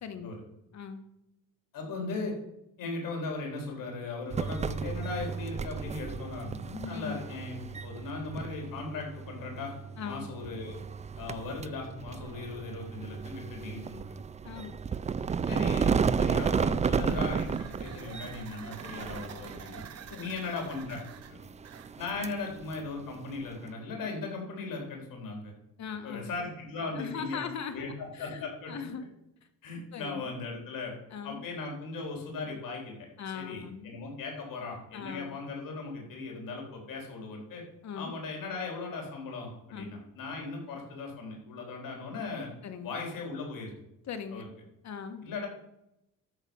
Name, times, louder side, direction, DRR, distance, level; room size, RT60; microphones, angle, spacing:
voice 1, 0.0-0.3 0.7-1.0 6.9-7.2 10.0-10.3 14.4-14.8 16.9-17.2 17.9-18.1 20.1-20.3 25.8-26.3 27.0-27.8 28.1-29.0 29.9-30.3 31.1-31.5 33.2-33.9 34.9-35.4 37.8-38.1 39.7-40.0 42.6-42.9 44.1-44.5 44.8-45.2, left 7 dB, 50° left, 7 dB, 1.4 m, -40 dB
voice 2, 1.7-2.3 2.8-9.7 10.0-10.7 11.2-14.2 15.5-19.8 20.2-21.0 21.3-21.5 22.0-25.5 26.0-27.4 27.7-28.9 29.6-30.9 31.2-33.0 33.3-37.6 37.9-42.5 42.8-43.7 44.3-44.4 45.2-45.5, left 3 dB, 70° left, 1 dB, 4.0 m, -38 dB
sound 1, 4.3-23.7, right 6 dB, 20° right, 0.3 m, -33 dB
sound 2, 16.6-22.8, right 8 dB, 50° right, 0.9 m, -49 dB
13.0 x 5.0 x 7.1 m, 0.85 s
cardioid pair, 130°, 34 cm